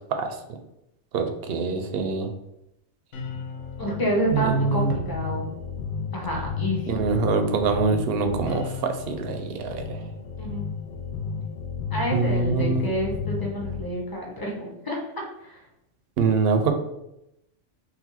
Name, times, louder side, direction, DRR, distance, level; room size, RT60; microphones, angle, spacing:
voice 1, 1.1-2.3 4.3-4.9 6.9-10.0 12.1-12.9 16.2-16.7, right 4 dB, 65° right, 6 dB, 0.7 m, -24 dB
sound 1, 3.1-13.8, left 6 dB, 75° left, 1.0 m, -33 dB
voice 2, 3.8-5.5 6.1-6.8 10.4-10.6 11.9-15.0 15.4-15.6, equal, 20° left, -2 dB, 0.8 m, -28 dB
4.0 x 2.2 x 4.2 m, 0.86 s
omnidirectional pair, 1.3 m